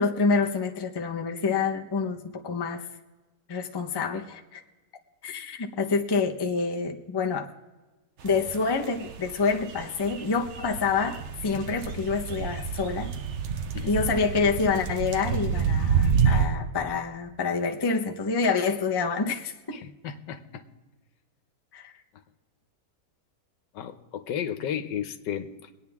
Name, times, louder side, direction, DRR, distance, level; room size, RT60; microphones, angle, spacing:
voice 1, 0.0-2.8 3.5-4.6 5.2-7.5 8.2-13.1 13.9-19.8 21.7-21.9, left 4 dB, 25° left, 4 dB, 0.6 m, -27 dB
sound 1, 8.3-16.5, right 6 dB, 55° right, 0.8 m, -28 dB
voice 2, 19.7-20.6 23.7-25.7, left 9 dB, 85° left, 10 dB, 1.5 m, -34 dB
23.5 x 9.3 x 3.5 m, 1.2 s
omnidirectional pair, 1.9 m